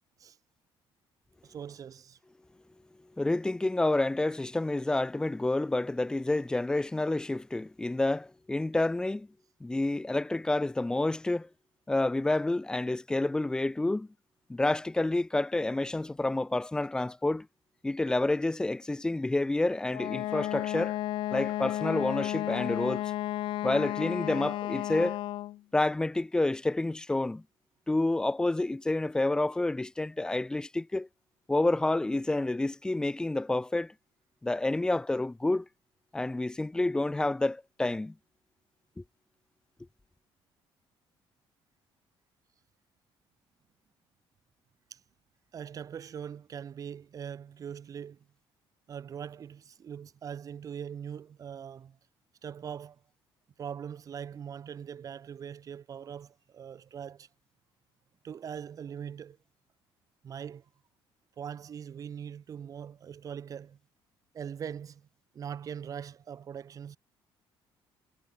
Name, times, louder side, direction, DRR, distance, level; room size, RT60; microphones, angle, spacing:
voice 1, 1.4-2.2 44.9-45.0 45.5-48.2 48.9-52.0 52.4-53.0 53.6-57.3 58.2-59.4 60.2-60.6 61.4-63.8 64.3-65.1 65.3-67.0, right 8 dB, 40° right, 3.2 m, -41 dB
voice 2, 3.2-9.3 9.6-11.5 11.9-14.1 14.5-17.5 17.8-21.0 21.3-23.1 23.6-25.2 25.7-27.4 27.9-31.1 31.5-33.9 34.4-35.7 36.1-38.1 39.0-39.1, left 2 dB, 10° left, 0.8 m, -29 dB
Wind instrument woodwind instrument, 19.9-25.6, left 15 dB, 65° left, 0.5 m, -33 dB
cardioid pair, 150°, 9 cm